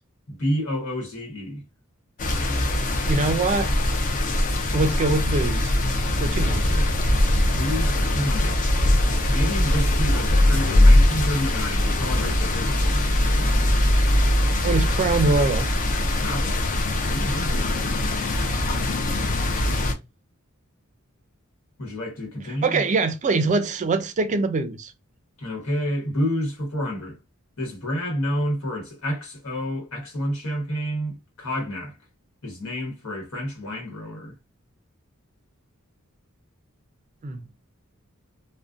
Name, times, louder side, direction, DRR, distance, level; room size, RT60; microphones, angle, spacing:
voice 1, 0.3-1.6 6.3-6.9 7.4-8.6 9.0-13.8 16.0-16.6 16.9-17.7 21.8-22.8 25.4-27.2 27.6-32.0 32.4-34.3, equal, 85° left, 1.1 m, -29 dB
sound 1, 2.2-19.9, left 1 dB, 40° left, 0.4 m, -21 dB
voice 2, 3.0-3.7 4.7-5.8 6.2-6.8 14.4-15.7 22.6-24.9 37.2-37.4, right 3 dB, 35° right, 0.4 m, -23 dB
2.5 x 2.1 x 2.4 m
head